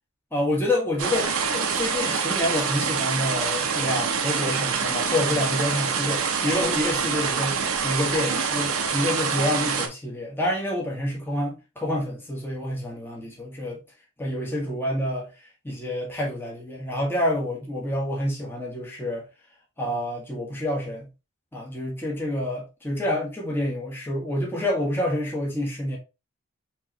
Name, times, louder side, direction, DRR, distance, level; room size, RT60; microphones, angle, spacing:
voice 1, 0.3-7.6 7.8-13.8 14.2-15.3 15.6-19.2 19.8-21.1 21.5-26.0, left 1 dB, 10° left, 1.3 m, -28 dB
sound 1, 1.0-9.9, right 6 dB, 75° right, 0.8 m, -26 dB
5.4 x 3.2 x 2.9 m
head